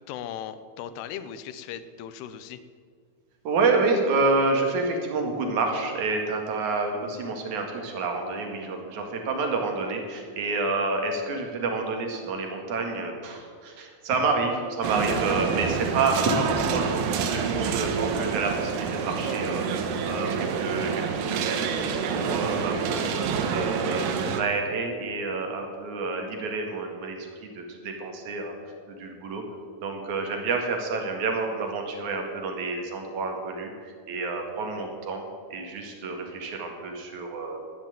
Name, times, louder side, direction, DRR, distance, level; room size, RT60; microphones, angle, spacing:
voice 1, 0.0-2.6, left 9 dB, 80° left, 13 dB, 2.8 m, -38 dB
voice 2, 3.4-23.1 23.5-28.5 28.9-29.4 29.8-35.2 35.5-37.6, right 3 dB, 55° right, 3 dB, 2.9 m, -29 dB
sound 1, 14.8-24.4, right 6 dB, 80° right, 3.3 m, -27 dB
12.5 x 10.5 x 9.2 m, 2.1 s
omnidirectional pair, 4.7 m